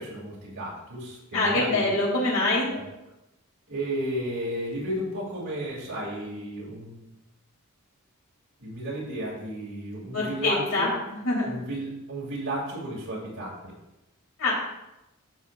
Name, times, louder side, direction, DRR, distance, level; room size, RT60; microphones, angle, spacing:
voice 1, 0.0-1.9 2.7-2.8 3.7-7.0 8.6-10.9 11.4-13.5, right 1 dB, 85° right, -7 dB, 2.8 m, -33 dB
voice 2, 1.3-2.7 10.1-10.9 11.2-11.5 14.4-14.5, left 2 dB, 70° left, -4 dB, 2.9 m, -24 dB
12.5 x 6.8 x 2.5 m, 0.93 s
head